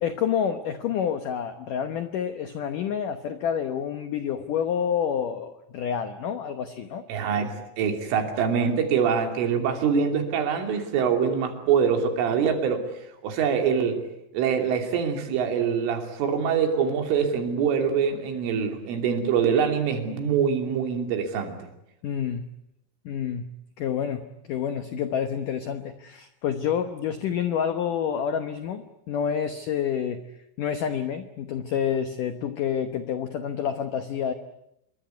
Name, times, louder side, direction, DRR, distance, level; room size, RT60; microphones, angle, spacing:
voice 1, 0.0-7.0 22.0-22.5 23.1-23.5 23.8-30.2 30.6-34.3, left 8 dB, 85° left, 9 dB, 1.8 m, -28 dB
voice 2, 7.1-12.8 13.2-14.0 14.3-21.6, right 7 dB, 85° right, 5 dB, 5.5 m, -24 dB
27.0 x 22.5 x 9.4 m, 0.81 s
omnidirectional pair, 5.5 m